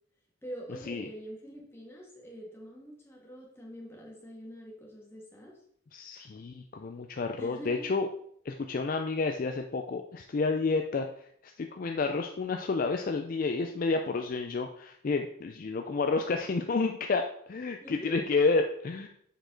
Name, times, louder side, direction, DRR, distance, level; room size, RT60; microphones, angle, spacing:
voice 1, 0.4-5.5 7.4-7.7 17.8-18.1, equal, 10° left, -3 dB, 1.6 m, -45 dB
voice 2, 5.9-8.1 8.5-19.1, left 4 dB, 40° left, 5 dB, 0.4 m, -30 dB
6.5 x 4.9 x 3.8 m, 0.67 s
head